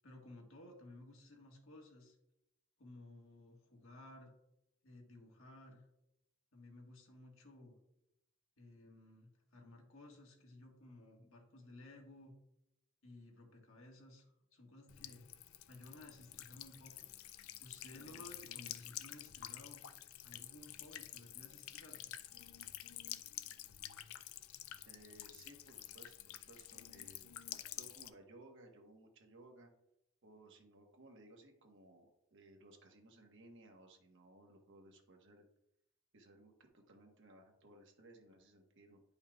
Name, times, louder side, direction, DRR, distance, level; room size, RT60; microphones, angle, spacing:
voice 1, 0.0-2.2 2.8-4.3 4.8-5.9 6.5-7.8 8.6-12.3 13.0-15.2 15.7-19.8 20.2-22.1, left 2 dB, 70° left, 0 dB, 1.6 m, -57 dB
Buzz / Water tap faucet / Trickle dribble, 14.9-28.1, left 13 dB, 85° left, 0.4 m, -50 dB
voice 2, 24.8-29.7 30.2-35.5 36.1-39.0, right 2 dB, 60° right, 2 dB, 1.2 m, -60 dB
10.5 x 5.6 x 2.3 m, 0.85 s
head